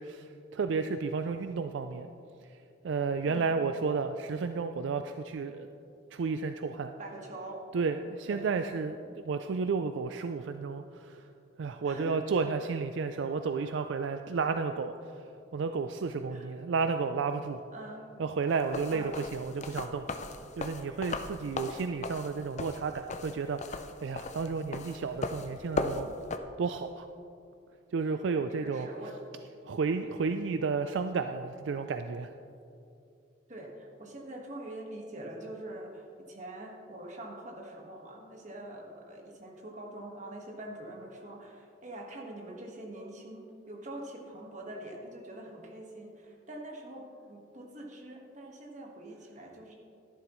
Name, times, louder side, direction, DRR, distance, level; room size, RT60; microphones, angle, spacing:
voice 1, 0.0-2.1 2.8-5.7 6.1-6.9 7.7-11.2 11.6-15.2 15.5-17.6 18.2-20.1 20.6-26.1 26.6-27.1 27.9-28.9 29.7-32.3, right 5 dB, 70° right, 8 dB, 0.4 m, -32 dB
voice 2, 7.0-7.6 8.3-8.4 11.8-12.3 16.3-16.5 17.7-18.1 18.9-19.2 28.5-29.2 33.5-49.8, right 1 dB, 40° right, 0 dB, 1.5 m, -44 dB
sound 1, 18.6-26.4, left 3 dB, 35° left, 0.5 m, -37 dB
13.0 x 11.0 x 3.1 m, 2.6 s
head